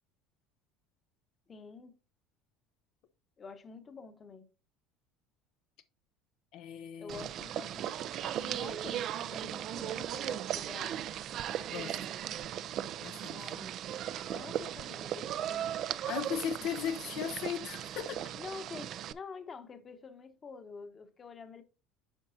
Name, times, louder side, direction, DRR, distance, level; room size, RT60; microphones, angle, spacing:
voice 1, 1.5-2.0 3.4-4.5 7.0-7.9 8.4-11.1 13.2-13.8 14.3-15.6 16.7-16.8 18.3-21.6, left 5 dB, 30° left, 1.0 m, -47 dB
voice 2, 6.5-7.3 11.7-12.0 13.0-13.5 16.1-18.2, left 9 dB, 65° left, 0.6 m, -37 dB
sound 1, 7.1-19.1, right 11 dB, 50° right, 0.4 m, -37 dB
9.0 x 5.3 x 2.7 m
supercardioid pair, 115°, 0 cm